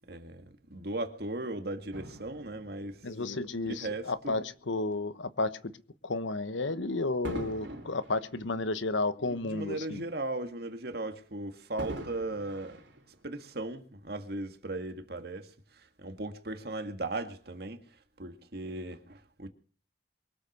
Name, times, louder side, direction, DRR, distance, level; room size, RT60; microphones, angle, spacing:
voice 1, 0.1-0.5 0.7-3.1 3.7-4.5 7.6-7.8 9.2-12.8 13.2-17.8 18.2-19.5, right 2 dB, 55° right, 1.9 m, -37 dB
Fireworks, 1.9-4.5 5.2-5.4 7.2-9.8 10.1-10.2 11.8-13.7 14.4-14.5, right 1 dB, 80° right, 3.5 m, -44 dB
voice 2, 3.0-5.7 6.0-10.0, left 2 dB, 85° left, 1.1 m, -32 dB
23.0 x 8.0 x 6.6 m
head